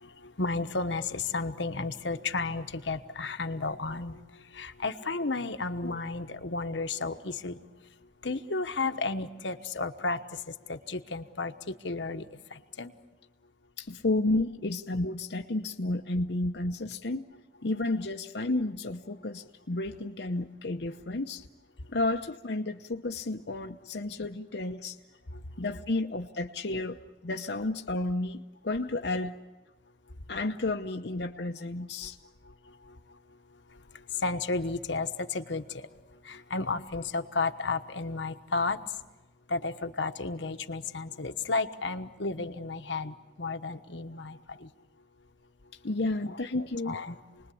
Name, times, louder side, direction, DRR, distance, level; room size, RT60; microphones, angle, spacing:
voice 1, 0.0-4.2 4.5-7.6 8.2-12.2 12.5-12.9 34.1-35.9 36.2-38.8 39.5-44.7 46.2-47.2, left 3 dB, 85° left, 7 dB, 1.3 m, -33 dB
voice 2, 13.8-17.3 17.6-21.4 21.9-25.0 25.6-27.0 27.2-28.4 28.6-29.3 30.3-32.2 45.8-47.0, left 2 dB, 70° left, 3 dB, 0.9 m, -31 dB
28.5 x 20.5 x 8.5 m, 1.1 s
head